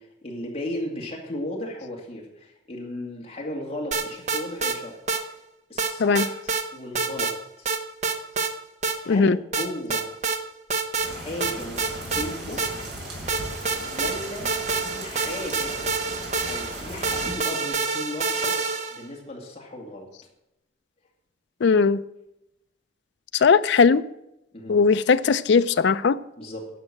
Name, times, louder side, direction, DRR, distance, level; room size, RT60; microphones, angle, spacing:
voice 1, 0.0-5.0 5.7-6.5 6.7-7.7 9.0-10.1 11.0-12.6 13.8-15.8 16.5-18.6 18.9-20.1 24.5-24.8 26.4-26.7, left 1 dB, 30° left, 2.3 m, -36 dB
sound 1, 3.9-4.8 5.1-5.2 5.8-6.6 6.9-7.4 7.7-8.5 8.8-9.0 9.5-10.4 10.7-11.1 11.4-13.0 13.3-19.0, right 4 dB, 35° right, 0.8 m, -27 dB
voice 2, 9.1-9.4 21.6-22.0 23.3-24.0 24.7-26.2, left 5 dB, 65° left, 0.4 m, -18 dB
sound 2, 11.0-17.3, right 1 dB, 65° right, 3.9 m, -37 dB
11.0 x 6.2 x 7.5 m
head